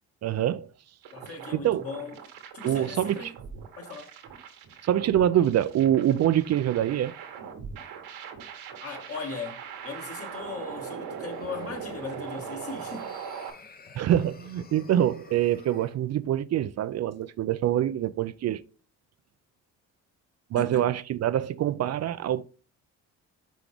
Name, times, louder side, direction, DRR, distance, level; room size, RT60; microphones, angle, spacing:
voice 1, 0.2-0.7 1.5-1.9 2.6-3.3 4.8-7.1 13.9-18.6 20.5-22.4, right 11 dB, 50° right, 0.5 m, -25 dB
sound 1, 1.0-13.5, right 7 dB, 90° right, 1.8 m, -41 dB
voice 2, 1.1-2.1 2.5-3.3 3.8-4.1 8.8-13.1 20.5-20.9, left 4 dB, 45° left, 2.0 m, -38 dB
sound 2, 11.2-16.0, left 5 dB, 30° left, 0.8 m, -51 dB
6.0 x 4.7 x 3.5 m
cardioid pair, 90°, 33 cm